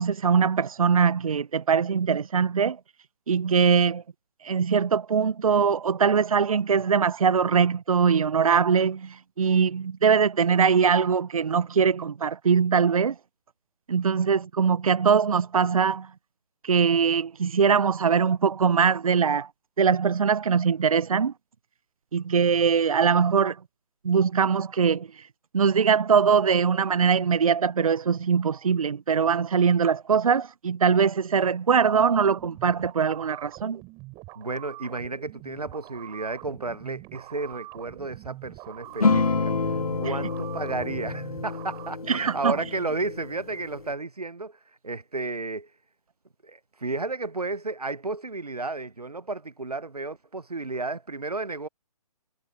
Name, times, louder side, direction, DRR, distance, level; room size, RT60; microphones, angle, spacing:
voice 1, 0.0-2.8 3.3-4.0 4.4-13.2 13.9-16.1 16.6-19.5 19.8-21.3 22.1-23.6 24.0-25.2 25.5-33.8 42.1-42.6, right 6 dB, 65° right, 0.7 m, -22 dB
sound 1, 31.9-41.9, right 25 dB, 20° right, 7.4 m, -44 dB
voice 2, 34.3-45.7 46.4-51.7, right 3 dB, 90° right, 0.9 m, -33 dB
sound 2, 39.0-43.9, left 4 dB, 75° left, 1.7 m, -28 dB
figure-of-eight pair, 135°, 19 cm